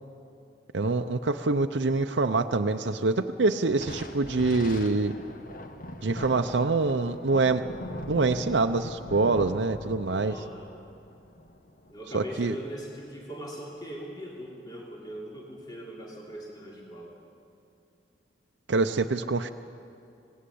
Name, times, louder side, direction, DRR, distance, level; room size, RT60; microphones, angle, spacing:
voice 1, 0.7-5.1 6.0-7.6 8.1-10.3 12.1-12.5 18.7-19.5, right 3 dB, 80° right, 6 dB, 0.7 m, -25 dB
Thunder, 3.7-12.5, left 1 dB, 50° left, 1.3 m, -41 dB
voice 2, 10.2-10.7 11.9-17.2, equal, 25° left, -3 dB, 3.3 m, -40 dB
25.0 x 19.5 x 8.5 m, 2.6 s
head